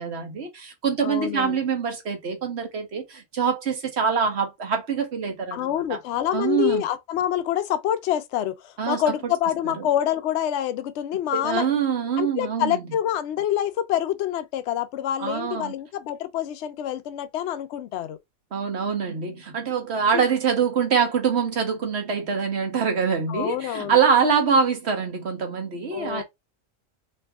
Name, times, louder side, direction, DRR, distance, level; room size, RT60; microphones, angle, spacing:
voice 1, 0.0-6.0 6.3-6.8 8.8-9.3 9.6-9.7 11.3-12.8 15.2-15.7 18.5-26.2, right 6 dB, 55° right, 1.4 m, -24 dB
voice 2, 1.0-1.6 5.5-11.7 12.2-18.2 20.1-20.2 23.3-24.0 24.5-24.6 25.9-26.2, left 11 dB, 65° left, 0.8 m, -26 dB
3.3 x 3.0 x 3.4 m
omnidirectional pair, 1.4 m